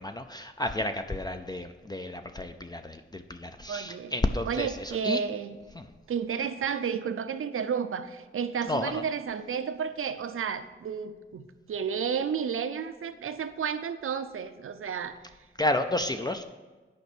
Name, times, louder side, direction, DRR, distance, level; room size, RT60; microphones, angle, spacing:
voice 1, 0.0-5.2 5.8-5.9 8.7-9.0 15.6-16.4, left 1 dB, 20° left, 6 dB, 0.4 m, -31 dB
voice 2, 3.7-4.1 4.5-5.6 6.1-15.2, right 7 dB, 80° right, 10 dB, 0.6 m, -32 dB
9.5 x 5.3 x 6.1 m, 1.3 s
wide cardioid pair, 160°, 21 cm